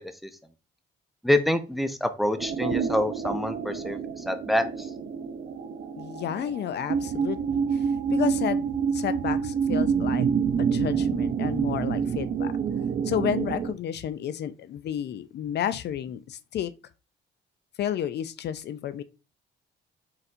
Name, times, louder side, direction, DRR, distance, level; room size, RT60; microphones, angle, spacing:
voice 1, 1.2-4.6, left 1 dB, ahead, 0.5 m, -26 dB
sound 1, 2.4-13.7, right 6 dB, 50° right, 0.5 m, -27 dB
voice 2, 6.0-10.3 10.6-12.5 13.0-16.7 17.8-19.0, left 10 dB, 60° left, 0.4 m, -31 dB
4.2 x 4.1 x 2.5 m
cardioid pair, 90°, 20 cm